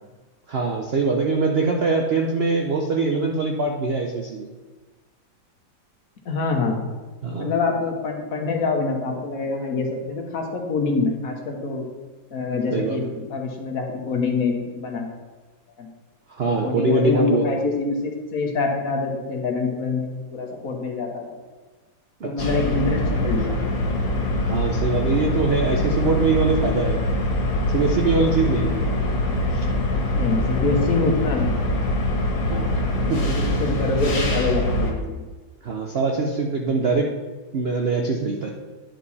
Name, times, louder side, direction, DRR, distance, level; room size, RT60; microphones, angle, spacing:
voice 1, 0.5-4.5 7.2-7.5 12.7-13.0 16.4-17.5 22.2-22.6 24.4-27.0 27.7-28.8 32.5-32.8 33.1-33.3 35.6-37.1 37.5-38.5, right 3 dB, 70° right, 2 dB, 0.5 m, -23 dB
voice 2, 6.2-6.9 7.4-11.8 12.3-15.2 15.8-15.9 16.5-21.4 22.2-23.6 28.6-28.7 30.1-31.6 32.8-35.0, left 3 dB, 55° left, 2 dB, 1.3 m, -25 dB
sound 1, 22.4-34.9, left 1 dB, 85° left, 2.2 m, -23 dB
10.5 x 4.5 x 4.2 m, 1.3 s
omnidirectional pair, 2.0 m